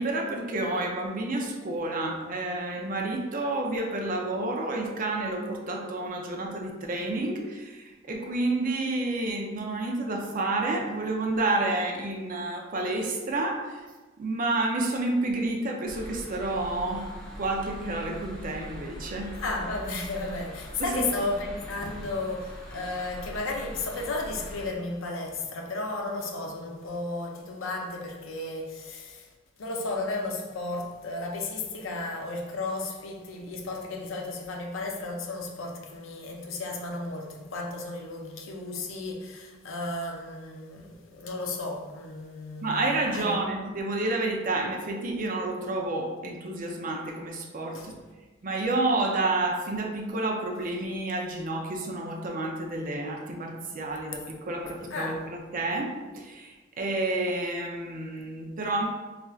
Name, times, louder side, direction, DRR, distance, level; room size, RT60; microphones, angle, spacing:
voice 1, 0.0-13.8 14.2-19.3 20.8-21.0 42.6-47.9 48.4-58.8, right 2 dB, 45° right, 0.5 m, -30 dB
sound 1, 15.9-24.7, equal, 5° left, 0.6 m, -42 dB
voice 2, 19.4-29.3 29.6-42.9 43.1-43.4 47.7-47.9 54.9-55.2, left 2 dB, 80° left, 0.5 m, -34 dB
4.2 x 2.5 x 2.4 m
head